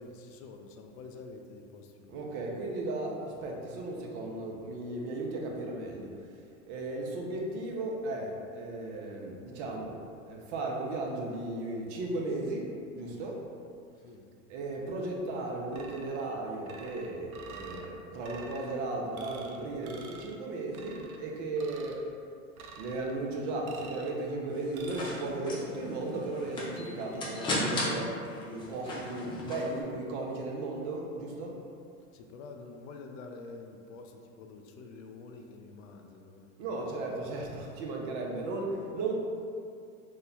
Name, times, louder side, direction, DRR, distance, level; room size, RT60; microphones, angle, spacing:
voice 1, 0.0-2.4 14.0-14.3 32.1-36.5, left 3 dB, 65° left, 4 dB, 0.5 m, -47 dB
voice 2, 2.1-6.1 6.7-10.0 10.2-12.7 12.9-13.4 14.5-22.0 22.8-31.6 36.6-39.1, right 2 dB, 55° right, -1 dB, 0.7 m, -35 dB
sound 1, 15.7-16.3 16.7-17.9 18.2-18.7 19.1-19.6 19.8-20.4 20.7-21.2 21.6-22.0 22.6-23.1 23.6-24.2 24.7-25.2, right 4 dB, 90° right, 0.5 m, -48 dB
sound 2, 24.5-29.8, left 1 dB, 15° left, 0.3 m, -36 dB
3.1 x 2.2 x 3.8 m, 2.3 s
hypercardioid pair, 105°, 42 cm